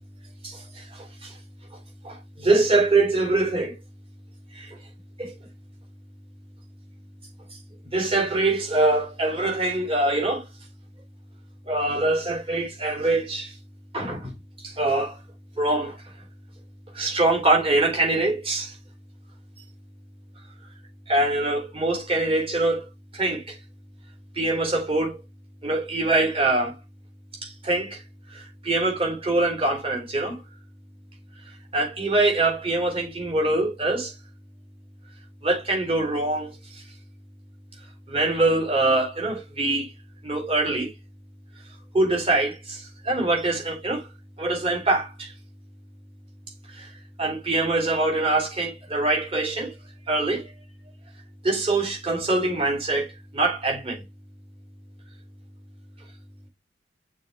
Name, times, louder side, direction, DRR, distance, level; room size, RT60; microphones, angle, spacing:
voice 1, 0.4-1.4 2.0-3.8 4.5-4.8 5.2-5.3 7.9-10.5 11.7-13.6 13.9-15.2 15.6-16.0 16.9-18.8 21.1-22.9 23.1-23.6 24.3-25.2 25.6-26.8 27.4-28.0 28.3-30.4 31.5-34.1 35.4-36.8 38.1-39.9 40.2-40.9 41.9-44.1 44.4-45.3 46.7-49.7 50.1-50.5 51.4-54.0, right 2 dB, 30° right, 3.6 m, -24 dB
6.8 x 4.2 x 3.4 m
head